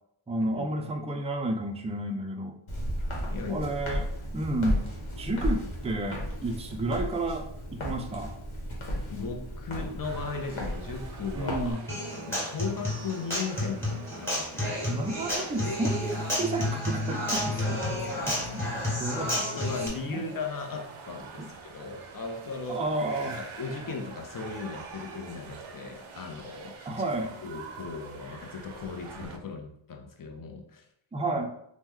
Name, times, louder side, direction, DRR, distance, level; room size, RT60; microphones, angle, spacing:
voice 1, 0.3-2.6 3.5-4.1 4.3-4.9 5.2-7.5 7.7-8.3 11.3-11.8 14.9-17.8 18.3-19.4 20.0-20.2 21.4-21.5 22.7-23.4 26.9-27.4 31.1-31.5, right 2 dB, 15° right, 3 dB, 0.3 m, -31 dB
Walk footsteps, 2.7-11.7, equal, 90° left, 1.0 m, -34 dB
voice 2, 3.3-3.7 9.1-11.8 12.3-14.7 17.6-17.9 19.4-22.9 23.4-26.9 27.4-30.8, left 4 dB, 45° left, 3 dB, 0.6 m, -37 dB
sound 1, 10.0-29.4, right 5 dB, 85° right, 0.6 m, -46 dB
Human voice / Acoustic guitar, 11.9-19.9, left 1 dB, 5° left, 1.1 m, -31 dB
3.0 x 2.1 x 3.5 m, 0.73 s
wide cardioid pair, 75°, 47 cm